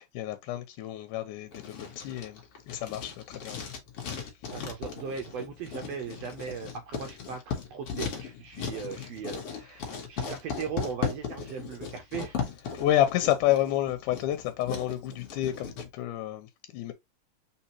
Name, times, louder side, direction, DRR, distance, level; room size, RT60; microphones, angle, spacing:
voice 1, 0.0-2.4 2.7-3.7 12.7-16.9, left 13 dB, 90° left, 2.3 m, -29 dB
Writing, 1.5-15.9, left 6 dB, 55° left, 1.9 m, -37 dB
voice 2, 4.5-12.4, right 6 dB, 80° right, 1.5 m, -38 dB
4.3 x 4.1 x 2.9 m
omnidirectional pair, 3.6 m